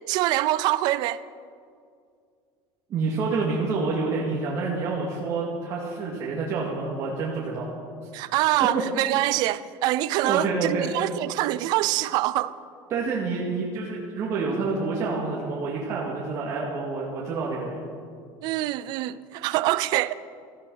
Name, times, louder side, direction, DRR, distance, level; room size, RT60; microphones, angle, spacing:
voice 1, 0.1-1.2 8.1-12.6 18.4-20.1, right 16 dB, 55° right, 0.5 m, -25 dB
voice 2, 2.9-7.7 8.1-8.2 8.7-8.8 10.1-10.9 12.9-17.8, right 4 dB, 35° right, 2.4 m, -28 dB
18.0 x 14.0 x 5.7 m
cardioid pair, 175°, 9 cm